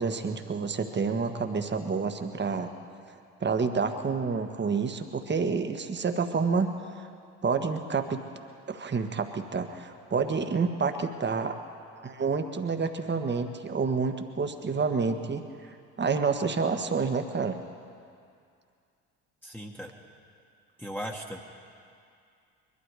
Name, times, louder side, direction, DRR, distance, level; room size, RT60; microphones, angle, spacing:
voice 1, 0.0-2.7 3.4-6.7 7.4-8.2 8.7-11.6 12.0-17.6, right 5 dB, 30° right, 6 dB, 1.4 m, -29 dB
voice 2, 19.4-19.9 20.8-21.4, equal, 5° left, -2 dB, 1.6 m, -37 dB
22.5 x 12.5 x 4.9 m, 2.4 s
hypercardioid pair, 55°, 38 cm